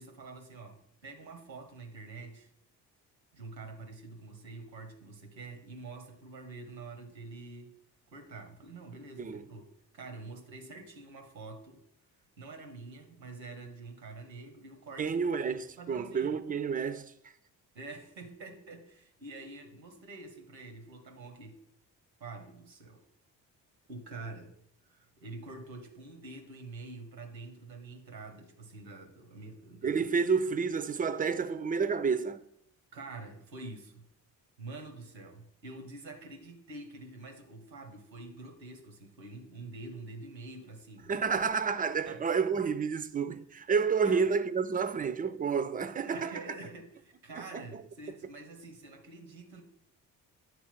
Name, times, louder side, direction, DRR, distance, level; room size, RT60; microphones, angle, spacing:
voice 1, 0.0-2.5 3.3-7.7 8.1-9.7 9.9-11.8 12.4-15.2 15.8-16.4 17.7-21.6 22.2-23.0 23.9-24.6 24.9-30.0 32.9-34.1 34.6-41.1 42.0-42.2 44.0-44.3 46.1-49.6, right 3 dB, 85° right, 0.9 m, -46 dB
voice 2, 15.0-17.1 29.8-32.4 41.1-46.3 47.4-47.8, right 5 dB, 20° right, 0.4 m, -30 dB
9.4 x 4.1 x 5.7 m
figure-of-eight pair, 40°, 50 cm